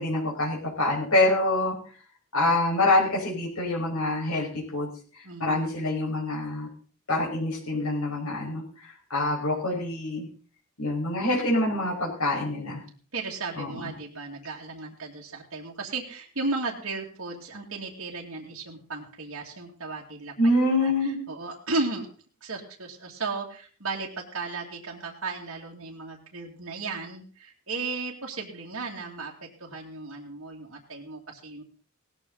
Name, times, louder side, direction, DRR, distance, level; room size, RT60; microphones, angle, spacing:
voice 1, 0.0-1.8 2.3-4.9 5.1-6.7 7.1-10.3 10.8-12.8 13.6-13.9 20.4-21.2, left 2 dB, 85° left, -3 dB, 5.7 m, -26 dB
voice 2, 5.2-5.9 13.1-20.3 20.8-20.9 21.3-22.1 22.4-31.6, right 3 dB, 65° right, -3 dB, 2.6 m, -35 dB
18.0 x 14.0 x 4.1 m, 0.41 s
head